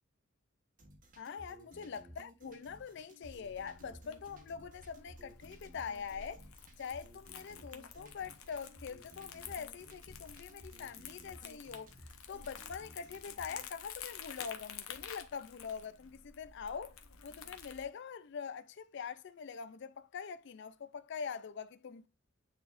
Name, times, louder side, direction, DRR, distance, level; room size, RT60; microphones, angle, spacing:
sound 1, 0.8-13.7, equal, 40° right, 1.4 m, -57 dB
voice 1, 1.2-6.4 6.8-11.9 12.3-22.1, left 6 dB, 55° left, 0.4 m, -44 dB
Crumpling crinkling, 3.2-17.8, left 7 dB, 80° left, 1.0 m, -51 dB
9.6 x 4.0 x 2.5 m
head